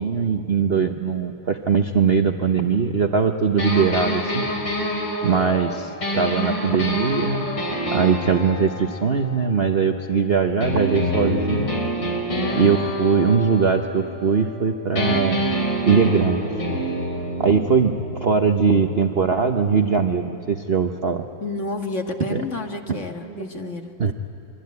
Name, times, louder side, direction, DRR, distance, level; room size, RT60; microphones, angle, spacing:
voice 1, 0.0-4.4 5.2-7.5 7.9-11.7 12.5-15.4 15.8-16.5 17.4-17.9 18.2-21.2 22.3-22.4 22.9-23.0 23.4-23.5 24.0-24.1, right 5 dB, 45° right, 5 dB, 0.8 m, -21 dB
sound 1, 3.6-10.1 10.6-14.6 15.0-20.7, equal, 70° left, 4.9 m, -27 dB
voice 2, 21.4-23.9, left 2 dB, 40° left, 3 dB, 1.9 m, -30 dB
25.5 x 23.5 x 9.5 m, 2.6 s
omnidirectional pair, 2.1 m